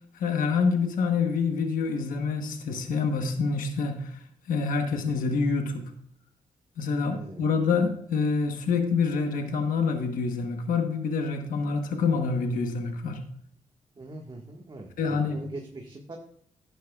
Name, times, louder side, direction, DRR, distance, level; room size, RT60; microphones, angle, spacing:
voice 1, 0.1-4.2 4.5-5.8 6.8-13.2 15.0-15.4, left 4 dB, 85° left, 6 dB, 1.1 m, -26 dB
voice 2, 7.1-7.4 14.0-16.2, right 2 dB, 35° right, 0 dB, 1.6 m, -42 dB
12.0 x 10.0 x 2.3 m, 0.64 s
cardioid pair, 70°, 14 cm